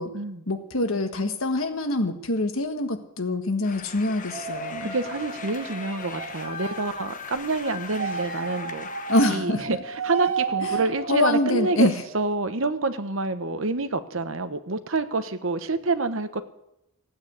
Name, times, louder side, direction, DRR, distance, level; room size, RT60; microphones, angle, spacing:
voice 1, 0.5-4.9 9.1-9.7 10.6-12.0, left 2 dB, 75° left, 7 dB, 1.5 m, -25 dB
sound 1, 3.6-9.4, left 5 dB, 40° left, 1.1 m, -39 dB
sound 2, 4.3-7.0 7.9-12.4, right 6 dB, 85° right, 2.0 m, -33 dB
voice 2, 4.8-8.9 9.3-16.4, right 3 dB, 65° right, 11 dB, 1.0 m, -27 dB
15.5 x 8.8 x 8.6 m, 0.85 s
head